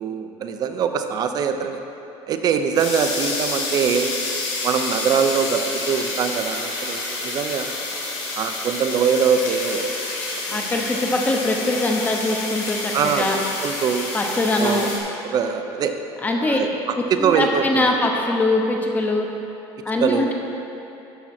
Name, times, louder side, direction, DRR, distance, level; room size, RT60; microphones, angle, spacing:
voice 1, 0.0-1.8 2.3-4.1 4.6-7.7 8.4-9.9 10.5-10.8 12.9-14.1 14.6-16.0 16.4-17.9 20.0-20.3, right 6 dB, 40° right, 7 dB, 0.5 m, -23 dB
sound 1, 2.7-15.0, left 3 dB, 80° left, 1.7 m, -29 dB
voice 2, 10.5-13.4 14.1-14.9 16.2-16.6 17.2-19.3 19.9-20.3, left 2 dB, 15° left, 1 dB, 0.9 m, -22 dB
12.0 x 5.9 x 4.3 m, 3.0 s
cardioid pair, 155°, 10 cm